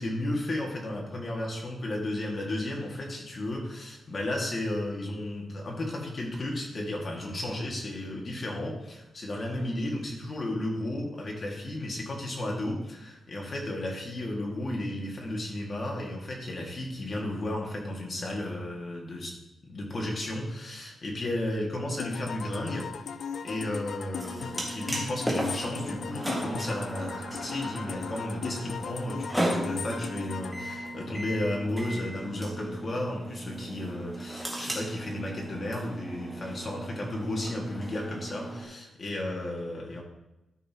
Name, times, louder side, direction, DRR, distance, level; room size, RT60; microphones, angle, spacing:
voice 1, 0.0-19.3 19.7-22.9 23.4-40.0, left 1 dB, 40° left, -1 dB, 2.0 m, -33 dB
sound 1, 22.0-31.7, left 7 dB, 65° left, 0.3 m, -38 dB
sound 2, 24.2-38.6, right 1 dB, ahead, 1.8 m, -36 dB
sound 3, 25.4-33.4, right 1 dB, 20° right, 1.2 m, -48 dB
13.0 x 5.5 x 2.9 m, 0.92 s
wide cardioid pair, 120°, 0 cm